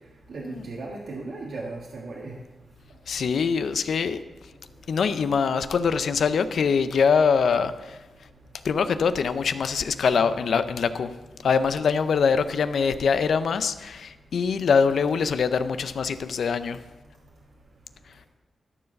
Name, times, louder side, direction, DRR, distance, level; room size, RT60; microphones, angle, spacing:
voice 1, 0.3-2.3 10.1-10.3, right 3 dB, 70° right, -3 dB, 1.5 m, -36 dB
voice 2, 3.1-4.2 4.9-8.0 8.6-11.1 11.4-16.8, left 6 dB, 75° left, 12 dB, 0.6 m, -23 dB
13.0 x 4.7 x 6.5 m, 1.1 s
cardioid pair, 80°, 0 cm